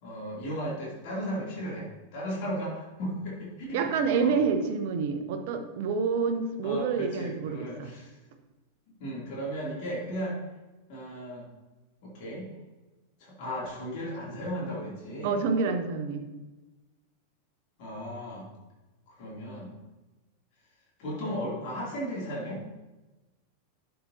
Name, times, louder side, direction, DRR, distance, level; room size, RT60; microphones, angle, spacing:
voice 1, 0.0-3.9 4.2-4.3 6.6-8.1 8.9-10.4 10.9-11.5 12.0-12.5 13.2-15.4 17.8-18.5 19.1-19.7 21.0-22.6, equal, 45° left, -5 dB, 2.9 m, -35 dB
voice 2, 3.7-7.9 15.2-16.2, right 5 dB, 50° right, 7 dB, 0.8 m, -28 dB
11.0 x 6.8 x 2.8 m, 1.1 s
figure-of-eight pair, 90°, 0 cm